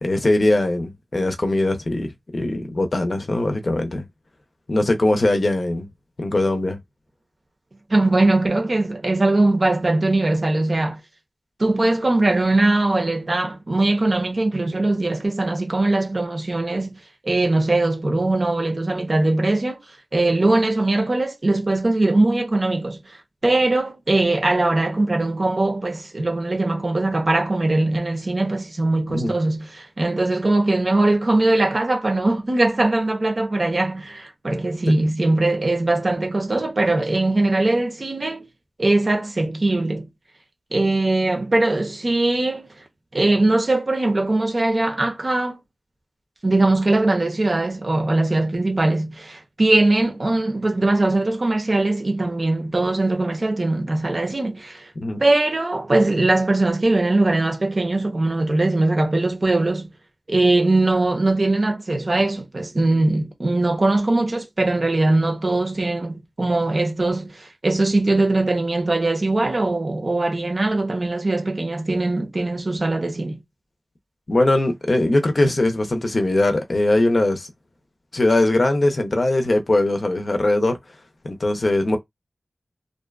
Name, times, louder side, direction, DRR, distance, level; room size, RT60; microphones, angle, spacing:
voice 1, 0.0-4.0 4.7-5.9 6.2-6.8 29.1-29.3 55.0-55.2 74.3-77.5 78.1-80.8 81.2-82.0, left 2 dB, 55° left, 0.5 m, -20 dB
voice 2, 7.9-11.0 11.6-17.0 17.2-19.8 20.1-23.2 23.4-38.5 38.8-40.1 40.7-42.7 43.1-45.6 46.4-54.9 55.2-59.9 60.3-73.4, right 2 dB, 50° right, 0.7 m, -21 dB
2.6 x 2.2 x 2.3 m
wide cardioid pair, 55°, 0 cm